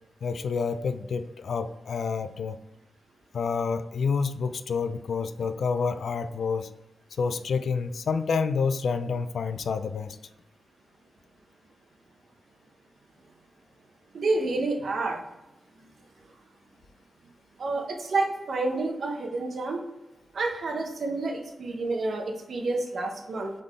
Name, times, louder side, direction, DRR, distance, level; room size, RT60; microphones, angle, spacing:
voice 1, 0.2-2.6 3.3-6.7 7.2-10.2, left 5 dB, 75° left, 10 dB, 0.3 m, -28 dB
voice 2, 14.1-15.2 17.6-19.8 20.3-23.5, right 3 dB, 65° right, 2 dB, 0.9 m, -29 dB
3.8 x 3.7 x 3.2 m, 0.97 s
wide cardioid pair, 130°, 0 cm